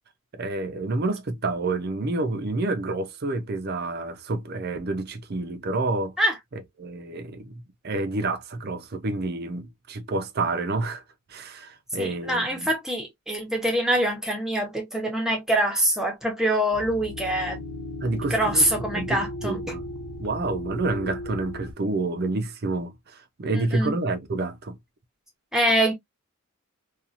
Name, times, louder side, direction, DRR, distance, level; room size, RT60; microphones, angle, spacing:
voice 1, 0.3-6.1 6.5-11.0 11.3-12.7 18.0-19.8 20.2-24.8, right 2 dB, 45° right, 0.5 m, -29 dB
voice 2, 12.0-17.6 18.3-19.6 23.5-23.9 25.5-25.9, right 1 dB, ahead, 0.8 m, -24 dB
sound 1, 16.7-21.7, left 1 dB, 60° left, 1.2 m, -36 dB
2.8 x 2.4 x 2.4 m
head